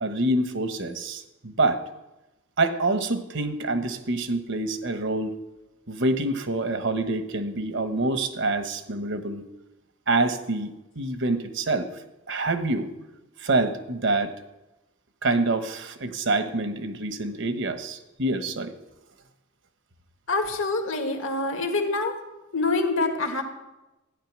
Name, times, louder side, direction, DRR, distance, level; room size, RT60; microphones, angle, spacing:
voice 1, 0.0-1.8 2.6-5.4 5.9-9.4 10.1-11.9 12.3-12.9 13.4-14.4 15.2-18.7, right 2 dB, 65° right, 9 dB, 1.2 m, -26 dB
voice 2, 20.3-22.1 22.5-23.4, left 3 dB, 75° left, 5 dB, 1.8 m, -25 dB
14.0 x 9.9 x 6.2 m, 1.0 s
head